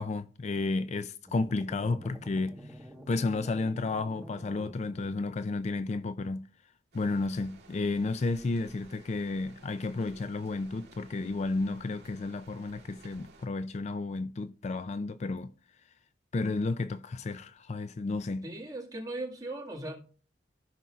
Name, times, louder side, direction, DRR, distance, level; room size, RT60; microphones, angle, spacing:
voice 1, 0.0-2.6 3.1-6.5 6.9-15.5 16.3-18.5, left 3 dB, 40° left, 0.4 m, -32 dB
sound 1, 1.3-5.5, equal, 5° right, 1.3 m, -48 dB
sound 2, 6.9-13.5, right 2 dB, 65° right, 2.3 m, -55 dB
voice 2, 18.4-20.0, right 2 dB, 20° right, 1.9 m, -38 dB
14.5 x 5.8 x 2.4 m
head